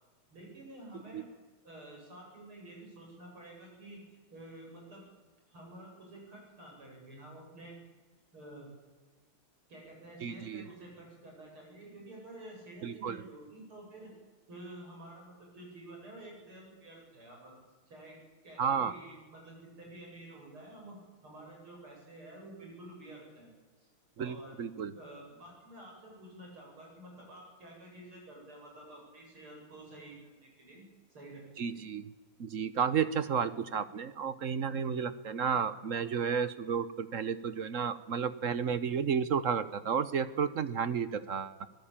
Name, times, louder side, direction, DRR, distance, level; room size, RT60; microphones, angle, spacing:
voice 1, 0.3-1.3 1.6-5.1 5.5-7.8 8.3-8.7 9.7-14.1 14.5-17.6 17.9-18.2 18.4-21.0 21.2-23.5 24.2-24.6 25.0-30.8 31.1-31.8, right 1 dB, 85° right, -1 dB, 8.9 m, -50 dB
voice 2, 10.2-10.7 12.8-13.2 18.6-18.9 24.2-24.9 31.6-32.0 32.4-41.6, right 6 dB, 50° right, 14 dB, 1.0 m, -32 dB
24.5 x 18.5 x 8.9 m, 1.3 s
omnidirectional pair, 2.3 m